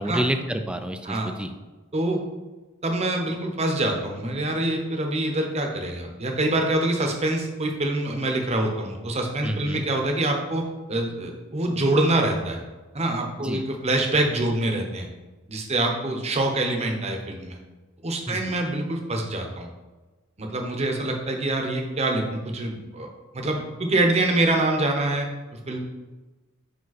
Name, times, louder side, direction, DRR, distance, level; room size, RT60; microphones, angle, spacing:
voice 1, 0.0-1.5 9.4-9.8 13.4-13.6 18.3-18.6, right 1 dB, 5° right, 7 dB, 0.4 m, -29 dB
voice 2, 2.8-12.6 12.9-15.1 15.5-17.6 18.0-19.7 20.4-23.1 23.3-25.8, right 2 dB, 30° right, 2 dB, 0.9 m, -25 dB
5.1 x 5.1 x 4.1 m, 1.2 s
head